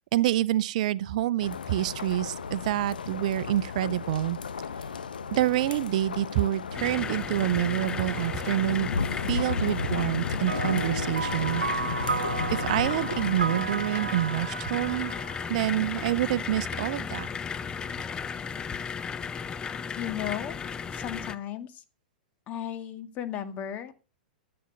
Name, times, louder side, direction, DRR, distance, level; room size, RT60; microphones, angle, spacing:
voice 1, 0.1-4.4 5.3-8.9 9.3-11.6 12.5-15.1 15.5-17.3, right 14 dB, 55° right, 0.6 m, -27 dB
sound 1, 1.4-13.6, left 5 dB, 70° left, 1.1 m, -34 dB
sound 2, 6.7-21.3, left 6 dB, 15° left, 0.7 m, -35 dB
sound 3, 10.5-16.2, right 5 dB, 75° right, 0.9 m, -34 dB
voice 2, 20.0-20.6 20.9-21.8 22.5-23.9, left 10 dB, 35° left, 2.1 m, -35 dB
14.0 x 8.8 x 6.5 m
figure-of-eight pair, 100°, 5 cm